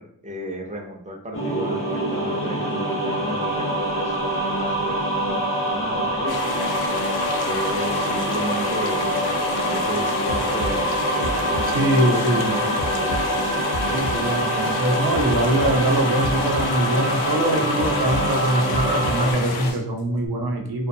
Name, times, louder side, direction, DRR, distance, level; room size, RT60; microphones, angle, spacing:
voice 1, 0.0-6.6 7.4-9.1 9.6-13.6, equal, 20° right, 1 dB, 0.4 m, -34 dB
sound 1, 1.3-19.3, right 1 dB, 35° left, 0.6 m, -25 dB
sound 2, 6.3-19.7, left 4 dB, 90° left, 0.5 m, -30 dB
sound 3, 10.3-11.9 12.1-14.4 14.6-16.9 17.1-19.4 19.6-20.3, left 1 dB, 60° left, 0.9 m, -32 dB
voice 2, 11.7-12.6 13.9-20.9, right 1 dB, 80° right, 2 dB, 0.6 m, -23 dB
2.6 x 2.2 x 2.6 m, 0.69 s
wide cardioid pair, 100°, 37 cm